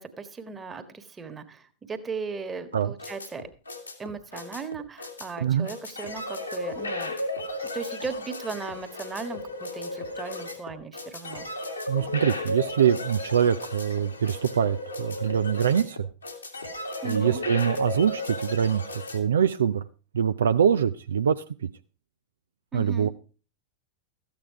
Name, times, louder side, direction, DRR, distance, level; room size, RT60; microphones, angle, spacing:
voice 1, 0.0-3.5 4.0-7.1 7.7-11.5 17.0-17.4 22.7-23.1, right 4 dB, 15° right, 9 dB, 1.5 m, -37 dB
sound 1, 2.7-19.2, left 2 dB, 80° left, 2.2 m, -35 dB
voice 2, 11.9-16.1 17.0-19.8 20.1-21.7 22.7-23.1, right 8 dB, 65° right, 11 dB, 0.5 m, -24 dB
14.0 x 8.9 x 4.7 m, 0.36 s
figure-of-eight pair, 90°, 0 cm